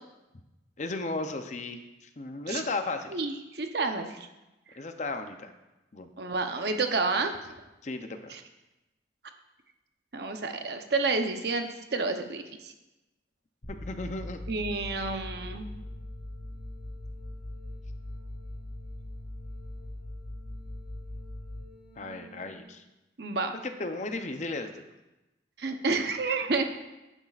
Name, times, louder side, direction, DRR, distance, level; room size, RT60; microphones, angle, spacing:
voice 1, 0.8-3.2 4.8-5.5 5.9-6.1 7.8-8.3 13.8-14.4 22.0-22.8 23.6-24.8, left 2 dB, 40° left, 7 dB, 0.6 m, -35 dB
voice 2, 3.1-4.3 6.2-7.3 8.3-8.4 10.1-12.7 14.5-15.7 23.2-23.6 25.6-26.6, right 3 dB, 60° right, 5 dB, 0.8 m, -30 dB
sound 1, 13.6-22.6, left 1 dB, 65° left, 2.8 m, -41 dB
10.5 x 9.9 x 2.5 m, 1.0 s
head